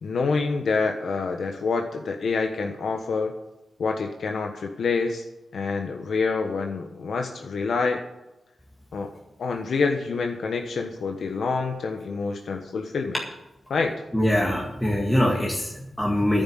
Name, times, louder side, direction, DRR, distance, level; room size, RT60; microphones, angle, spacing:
voice 1, 0.0-3.3 3.8-5.2 5.5-8.0 8.9-9.1 9.4-13.1 13.7-13.9, left 4 dB, 75° left, 3 dB, 1.2 m, -27 dB
voice 2, 14.1-16.4, left 1 dB, 10° left, -2 dB, 1.9 m, -23 dB
10.5 x 7.9 x 9.4 m, 0.95 s
wide cardioid pair, 105°, 0 cm